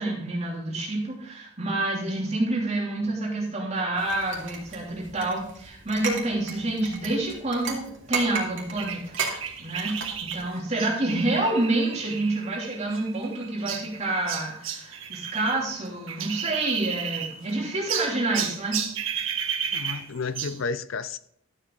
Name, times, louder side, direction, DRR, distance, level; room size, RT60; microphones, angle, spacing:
voice 1, 0.0-9.2 9.6-18.8, right 2 dB, 35° right, 3.0 m, -28 dB
sound 1, 4.0-10.5, right 4 dB, 70° right, 2.4 m, -36 dB
sound 2, 8.8-15.6 15.8-17.5 17.9-20.6, right 8 dB, 85° right, 1.4 m, -33 dB
voice 2, 19.7-21.2, left 4 dB, 80° left, 0.6 m, -32 dB
12.5 x 7.7 x 3.9 m
head